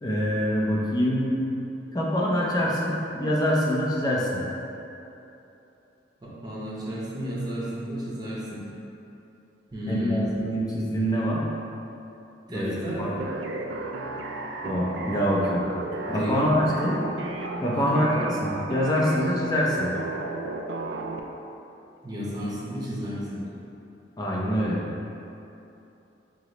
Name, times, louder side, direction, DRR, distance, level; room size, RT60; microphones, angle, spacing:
voice 1, 0.0-1.4 1.9-4.4 9.9-11.4 12.5-13.1 14.6-15.6 16.1-17.0 17.6-19.9 24.2-24.8, equal, 20° left, -4 dB, 0.5 m, -25 dB
voice 2, 6.2-8.7 9.7-10.3 12.5-13.2 16.1-16.6 17.7-18.0 22.0-23.5, equal, 20° right, -7 dB, 0.7 m, -32 dB
sound 1, 13.2-21.2, right 2 dB, 70° right, 0.3 m, -34 dB
4.7 x 2.0 x 3.8 m, 2.9 s
head